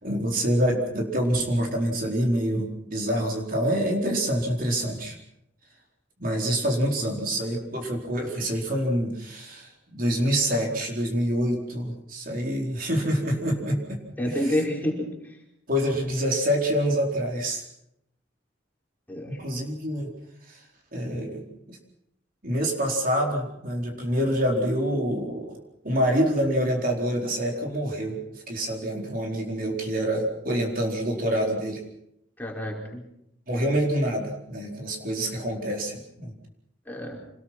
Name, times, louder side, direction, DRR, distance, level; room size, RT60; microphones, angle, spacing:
voice 1, 0.0-5.2 6.2-14.0 14.3-14.4 15.7-17.6 19.3-20.1 20.5-20.6 20.9-21.8 22.4-25.5 25.8-28.2 28.5-31.8 33.5-36.3, equal, 50° right, 0 dB, 4.5 m, -26 dB
voice 2, 14.2-15.1 19.1-19.3 32.4-33.0 36.9-37.2, left 1 dB, 10° left, -1 dB, 5.0 m, -28 dB
27.0 x 20.5 x 6.1 m, 0.80 s
head